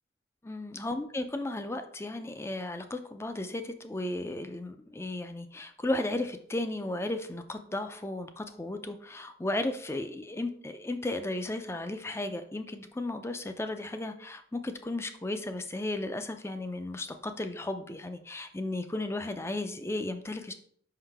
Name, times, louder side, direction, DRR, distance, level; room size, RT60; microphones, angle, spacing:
voice 1, 0.4-20.5, left 2 dB, 15° left, 8 dB, 0.4 m, -35 dB
5.7 x 5.4 x 3.4 m, 0.63 s
head